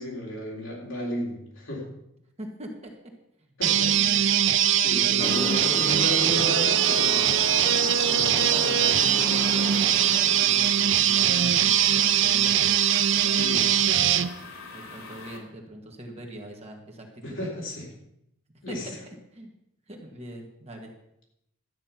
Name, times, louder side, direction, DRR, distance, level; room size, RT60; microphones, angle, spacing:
voice 1, 0.0-1.9 3.6-3.9 4.7-7.2 8.4-8.5 13.3-13.7 17.2-17.9 18.6-18.9, equal, 60° left, -2 dB, 3.9 m, -33 dB
voice 2, 2.4-2.9 3.4-4.4 5.1-5.5 8.0-12.8 13.1-14.2 14.7-17.4 18.7-19.5 19.9-20.9, right 1 dB, 30° right, 1 dB, 1.8 m, -41 dB
sound 1, 3.6-14.3, right 10 dB, 60° right, 0.5 m, -22 dB
sound 2, 5.2-10.7, left 3 dB, 20° left, 0.5 m, -35 dB
sound 3, 6.8-15.4, left 3 dB, 90° left, 2.7 m, -43 dB
12.5 x 8.8 x 6.0 m, 0.79 s
head